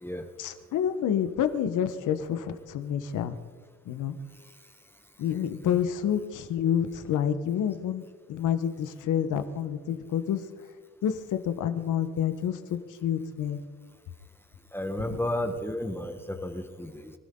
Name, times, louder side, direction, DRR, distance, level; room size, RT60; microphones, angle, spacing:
voice 1, 0.4-3.3 3.9-4.1 5.2-10.4 11.0-13.6 15.0-15.2, left 9 dB, 80° left, 9 dB, 1.3 m, -28 dB
voice 2, 14.7-17.1, left 1 dB, 5° left, 6 dB, 1.3 m, -33 dB
25.0 x 12.5 x 3.8 m, 1.5 s
cardioid pair, 90°, 30 cm